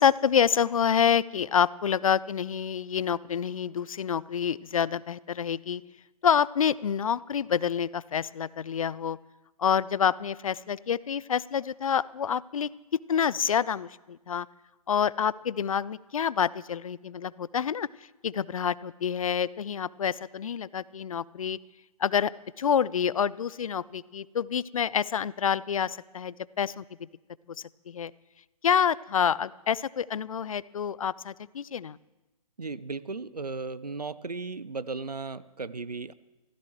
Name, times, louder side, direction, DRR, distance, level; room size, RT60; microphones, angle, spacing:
voice 1, 0.0-5.8 6.2-9.2 9.6-12.7 13.1-14.5 14.9-17.9 18.2-21.6 22.0-22.3 22.6-26.8 27.9-28.1 28.6-32.0, left 8 dB, 60° left, 21 dB, 0.5 m, -27 dB
voice 2, 32.6-36.1, right 4 dB, 90° right, 17 dB, 0.6 m, -36 dB
24.0 x 15.5 x 3.2 m, 1.1 s
figure-of-eight pair, 130°, 20 cm